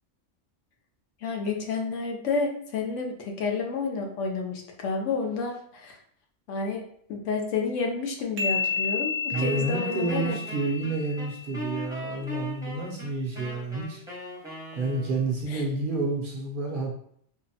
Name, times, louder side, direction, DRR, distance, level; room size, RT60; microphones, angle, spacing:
voice 1, 1.2-6.0 6.5-6.8 7.1-10.4 15.5-15.6, left 4 dB, 80° left, 1 dB, 1.0 m, -30 dB
sound 1, 8.4-11.9, left 6 dB, 85° right, 0.9 m, -31 dB
Wind instrument woodwind instrument, 9.3-15.4, equal, 5° right, 0.6 m, -39 dB
voice 2, 9.3-14.0 14.8-16.9, right 2 dB, 55° right, -2 dB, 0.7 m, -29 dB
3.8 x 2.0 x 2.8 m, 0.66 s
omnidirectional pair, 1.3 m